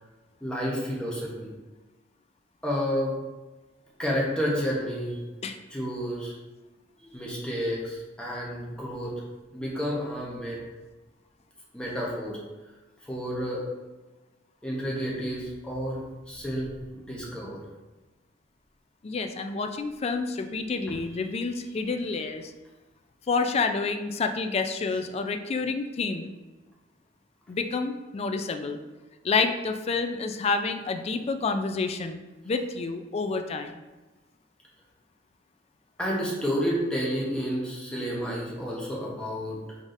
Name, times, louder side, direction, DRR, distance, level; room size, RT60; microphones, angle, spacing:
voice 1, 0.4-1.5 2.6-3.1 4.0-5.2 5.7-6.3 7.0-9.2 9.5-10.6 11.7-12.4 13.0-13.6 14.6-17.6 20.8-21.0 36.0-39.8, equal, 5° left, -4 dB, 0.9 m, -30 dB
voice 2, 19.0-22.5 23.3-26.3 27.5-28.8 29.2-33.7, left 4 dB, 35° left, 6 dB, 0.3 m, -29 dB
4.7 x 4.0 x 2.5 m, 1.2 s
head